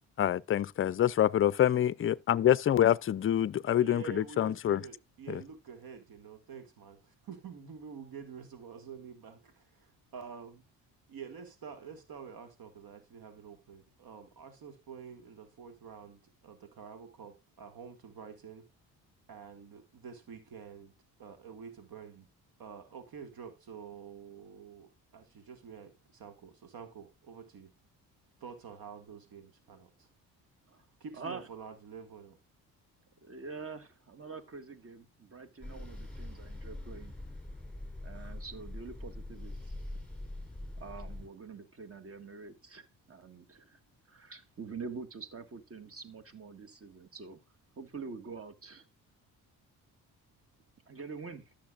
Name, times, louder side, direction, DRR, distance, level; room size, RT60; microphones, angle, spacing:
voice 1, 0.2-4.8 5.3-5.4, left 11 dB, 35° left, 0.5 m, -26 dB
voice 2, 3.8-9.4 10.1-10.6 11.1-18.6 19.3-20.9 21.2-22.3 22.6-27.7 28.4-30.1 31.0-32.4, right 6 dB, 65° right, 1.9 m, -48 dB
voice 3, 31.2-31.5 33.2-37.1 38.0-39.6 40.8-43.8 44.1-47.4 47.8-48.9 50.9-51.5, right 4 dB, 35° right, 1.8 m, -45 dB
sound 1, 35.6-41.3, left 1 dB, ahead, 3.8 m, -43 dB
13.5 x 6.5 x 2.4 m
supercardioid pair, 75°, 39 cm